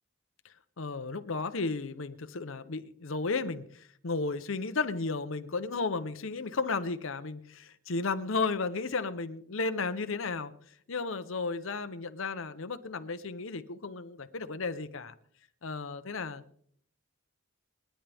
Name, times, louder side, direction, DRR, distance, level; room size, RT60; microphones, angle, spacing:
voice 1, 0.4-10.5 10.9-15.1 15.6-16.4, left 4 dB, 70° left, 11 dB, 0.8 m, -34 dB
28.5 x 10.5 x 3.5 m, 0.62 s
head